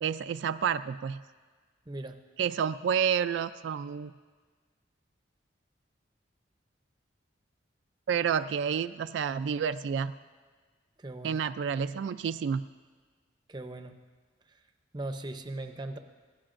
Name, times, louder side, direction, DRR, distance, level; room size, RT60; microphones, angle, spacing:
voice 1, 0.0-1.2 2.4-4.1 8.1-10.1 11.2-12.7, right 7 dB, 75° right, 11 dB, 0.3 m, -29 dB
voice 2, 1.9-2.2 11.0-11.4 13.5-13.9 14.9-16.0, right 2 dB, 25° right, 7 dB, 0.6 m, -38 dB
21.5 x 15.5 x 2.5 m, 1.5 s
head